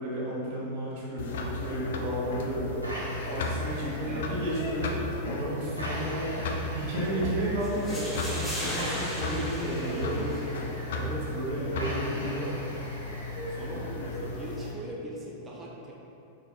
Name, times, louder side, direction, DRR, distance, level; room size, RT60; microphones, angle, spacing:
voice 1, 0.0-2.8 3.2-6.3 6.6-10.3 10.9-12.7, right 1 dB, 50° right, -6 dB, 1.2 m, -33 dB
sound 1, 1.2-14.7, left 2 dB, 60° left, 0.4 m, -35 dB
sound 2, 2.8-14.8, equal, 90° right, 0.8 m, -43 dB
voice 2, 4.0-4.4 5.6-6.2 9.3-9.5 9.9-10.6 11.5-11.8 13.5-15.9, right 1 dB, 15° right, -4 dB, 0.6 m, -41 dB
sound 3, 7.6-10.6, left 1 dB, 5° left, 1.2 m, -37 dB
4.8 x 3.7 x 2.3 m, 2.8 s
figure-of-eight pair, 90°, 0 cm